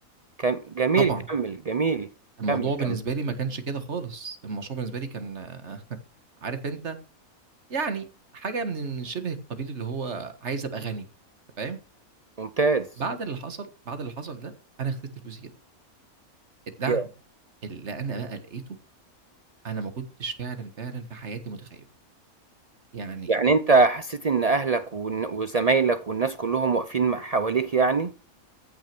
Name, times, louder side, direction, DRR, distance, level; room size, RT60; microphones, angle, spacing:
voice 1, 0.4-2.1 2.5-2.7 12.4-12.9 16.9-17.0 23.3-28.1, right 4 dB, 70° right, 0.3 m, -23 dB
voice 2, 0.9-1.3 2.4-5.8 6.4-7.0 7.7-8.1 8.3-11.1 11.6-11.8 13.0-14.5 14.8-15.0 15.2-15.5 16.8-17.1 17.6-18.6 19.6-21.9 22.9-23.3, right 4 dB, 50° right, 1.8 m, -32 dB
15.0 x 6.3 x 6.0 m
omnidirectional pair, 1.5 m